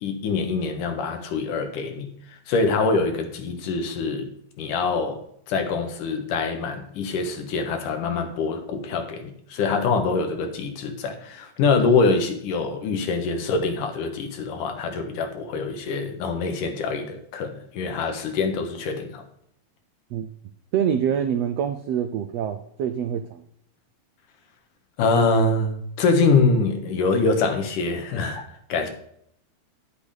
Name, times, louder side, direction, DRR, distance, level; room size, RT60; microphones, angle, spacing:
voice 1, 0.0-2.1 2.5-4.3 4.6-5.2 5.5-19.2 25.0-28.9, left 4 dB, 75° left, 2.9 m, -24 dB
voice 2, 20.7-23.4, right 8 dB, 85° right, 1.4 m, -25 dB
10.5 x 8.1 x 5.0 m
omnidirectional pair, 3.8 m